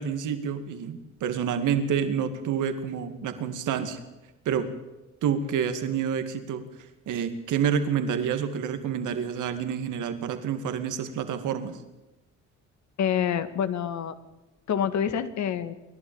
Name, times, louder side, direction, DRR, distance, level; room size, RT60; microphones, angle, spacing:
voice 1, 0.0-4.0 4.5-4.7 5.2-6.6 7.1-11.8, right 7 dB, 80° right, 8 dB, 2.4 m, -28 dB
voice 2, 13.0-14.2 14.7-15.7, left 8 dB, 65° left, 11 dB, 2.0 m, -27 dB
28.0 x 12.0 x 9.0 m, 1.0 s
cardioid pair, 90°, 30 cm